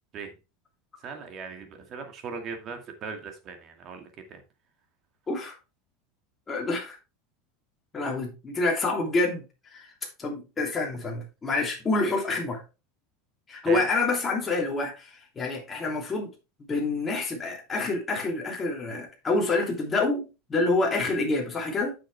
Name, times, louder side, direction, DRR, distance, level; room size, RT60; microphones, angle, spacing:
voice 1, 1.0-4.4 13.6-13.9, right 5 dB, 35° right, 2.1 m, -39 dB
voice 2, 6.5-7.0 7.9-9.5 9.7-9.9 10.2-12.6 13.5-16.3 16.7-21.9, left 3 dB, 20° left, 2.9 m, -27 dB
8.9 x 6.5 x 3.4 m
supercardioid pair, 145°, 0 cm